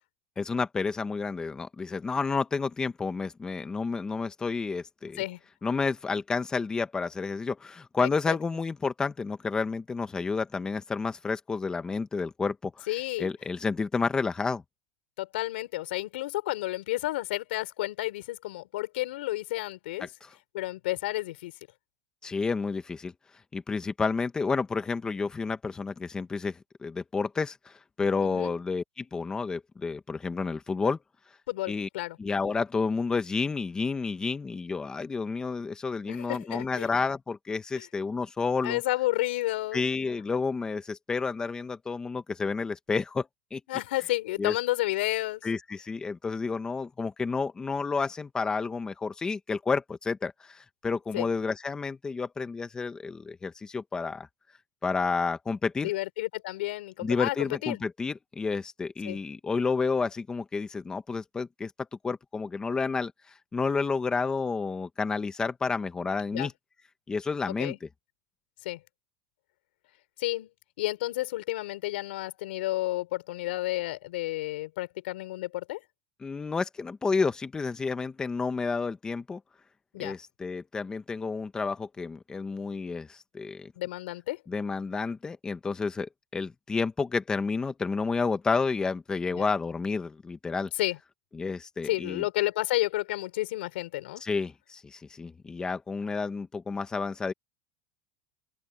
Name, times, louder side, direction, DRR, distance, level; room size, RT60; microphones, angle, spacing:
voice 1, 0.4-5.2 5.6-12.9 13.2-14.6 20.0-20.3 22.2-23.1 23.5-31.0 31.7-31.9 32.2-38.8 39.7-43.6 44.4-44.5 45.4-54.3 54.8-55.9 57.0-61.7 62.0-63.1 63.5-66.5 67.1-67.9 76.2-79.4 80.0-83.7 84.5-90.7 91.3-92.2 94.2-97.3, left 4 dB, 15° left, 1.3 m, -30 dB
voice 2, 12.9-13.3 15.2-20.1 20.5-21.5 28.2-28.5 31.5-32.2 36.1-36.9 37.8-37.9 38.6-39.8 43.7-45.4 51.1-51.3 55.8-57.8 59.1-59.2 66.3-66.5 67.6-67.8 68.6-68.8 70.2-70.5 70.8-75.8 79.9-80.2 83.8-84.4 89.3-89.4 90.8-91.0 91.8-94.2, left 17 dB, 90° left, 4.5 m, -31 dB
open air
supercardioid pair, 155°, 6 cm